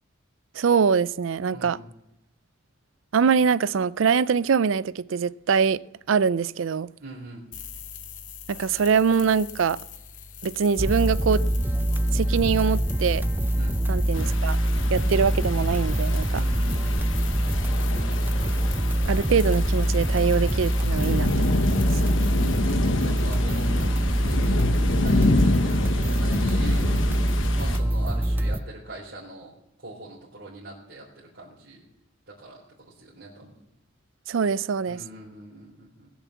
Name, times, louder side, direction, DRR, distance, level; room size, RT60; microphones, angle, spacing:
voice 1, 0.6-1.8 3.1-5.8 6.1-6.9 8.5-9.8 10.4-11.4 12.1-13.3 13.9-14.6 14.9-16.3 19.1-21.8 34.3-35.0, right 6 dB, 75° right, 0.4 m, -23 dB
voice 2, 1.5-1.9 7.0-7.5 13.6-13.9 16.3-17.3 22.2-22.7 23.0-23.9 24.3-26.8 27.6-29.5 29.8-31.8 32.3-32.6 32.9-33.5 34.9-36.1, right 1 dB, 55° right, 3.7 m, -42 dB
sound 1, 7.5-22.6, left 7 dB, 40° left, 0.9 m, -42 dB
sound 2, 10.8-28.6, right 1 dB, 10° right, 0.4 m, -24 dB
sound 3, 14.1-27.8, left 2 dB, 70° left, 1.1 m, -28 dB
20.5 x 7.2 x 7.1 m
head